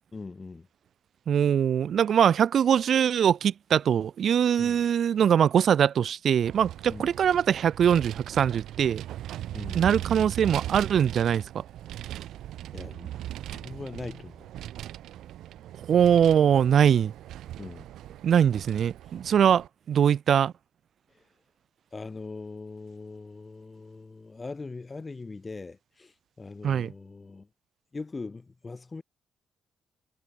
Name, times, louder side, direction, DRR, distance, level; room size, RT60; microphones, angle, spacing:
voice 1, 0.1-0.7 4.6-4.8 6.9-7.1 9.5-10.3 12.7-13.2 13.5-14.5 17.6-17.9 21.9-27.5 27.9-29.0, left 3 dB, 25° left, 5.0 m, -41 dB
voice 2, 1.3-9.0 9.7-11.6 15.8-17.1 18.2-20.5 26.6-26.9, right 8 dB, 60° right, 0.7 m, -22 dB
Vehicle, 6.4-19.7, right 13 dB, 80° right, 3.1 m, -39 dB
cardioid pair, 90°, 0 cm